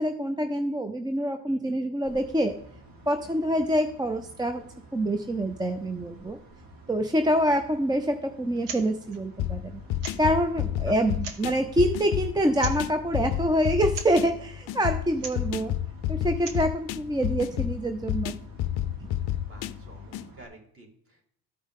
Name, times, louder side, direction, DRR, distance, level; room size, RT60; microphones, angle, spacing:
voice 1, 0.0-2.5 3.1-4.6 4.9-6.4 6.9-9.8 10.2-15.7 16.1-18.3 19.0-19.1, right 1 dB, 10° right, 7 dB, 0.4 m, -26 dB
voice 2, 1.5-1.8 10.9-11.0 19.5-21.2, right 1 dB, 30° right, 1 dB, 2.3 m, -51 dB
sound 1, 2.0-20.4, right 1 dB, 55° right, 2.0 m, -50 dB
sound 2, 8.6-8.8 9.1-9.2 10.0-10.4 11.1-11.6 12.6-12.9 13.9-14.2 15.1-15.5 16.3-16.7, right 5 dB, 75° right, 1.1 m, -38 dB
sound 3, 9.4-20.3, left 12 dB, 65° left, 0.5 m, -31 dB
13.5 x 5.1 x 3.7 m, 0.67 s
cardioid pair, 95°, 42 cm